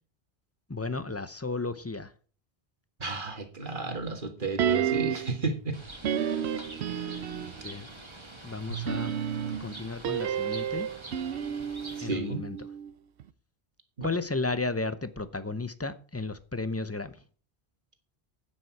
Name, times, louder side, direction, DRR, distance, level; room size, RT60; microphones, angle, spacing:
voice 1, 0.7-2.1 7.6-7.9 8.4-9.1 9.6-10.9 12.0-12.6 14.0-17.2, left 3 dB, 15° left, 0.6 m, -33 dB
voice 2, 3.0-5.8 6.9-7.4 12.0-12.4 14.0-14.1, right 3 dB, 50° right, 1.9 m, -33 dB
sound 1, 4.6-5.4 6.0-7.7 8.7-12.9 13.2-13.3, right 9 dB, 85° right, 1.0 m, -31 dB
Bird, 5.7-12.0, right 2 dB, 25° right, 1.9 m, -46 dB
10.0 x 9.6 x 4.6 m
omnidirectional pair, 1.1 m